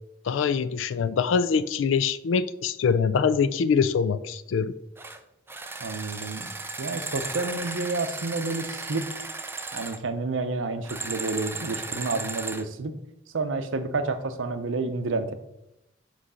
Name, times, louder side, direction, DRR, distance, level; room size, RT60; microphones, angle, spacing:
voice 1, 0.2-4.7, left 6 dB, 80° left, 14 dB, 0.4 m, -24 dB
sound 1, 5.0-5.2 5.5-10.0 10.8-12.7, right 3 dB, 10° right, 0.4 m, -35 dB
voice 2, 5.8-6.5 6.8-9.1 9.7-12.9 13.3-15.3, right 3 dB, 85° right, 9 dB, 0.6 m, -29 dB
6.2 x 3.2 x 5.5 m, 0.85 s
head